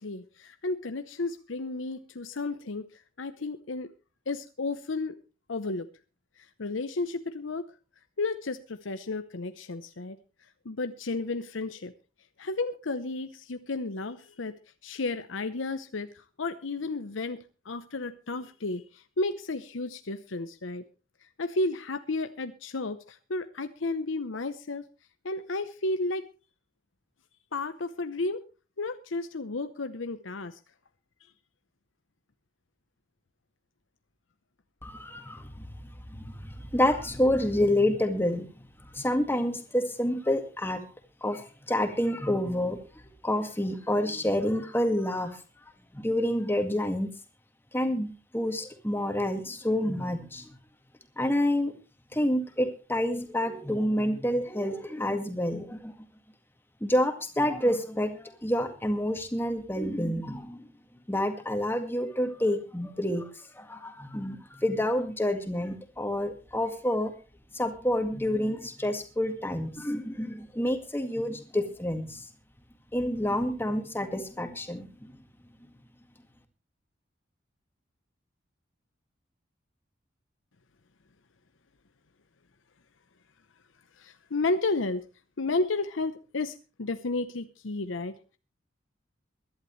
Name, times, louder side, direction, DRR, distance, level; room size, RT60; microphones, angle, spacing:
voice 1, 0.0-3.9 4.3-5.2 5.5-5.9 6.4-7.7 8.2-10.2 10.6-11.9 12.4-14.6 14.8-20.8 21.4-24.8 25.2-26.2 27.5-28.4 28.8-30.6 31.2-31.3 83.9-85.0 85.4-88.2, left 3 dB, 85° left, 10 dB, 0.8 m, -32 dB
voice 2, 34.8-38.6 38.9-40.8 41.2-42.8 43.2-45.4 45.9-47.1 47.7-50.5 51.2-51.7 52.1-55.9 56.8-60.7 61.1-67.1 67.5-72.3 72.9-75.2, left 1 dB, 10° left, 6 dB, 1.9 m, -28 dB
22.5 x 11.5 x 3.2 m, 0.33 s
head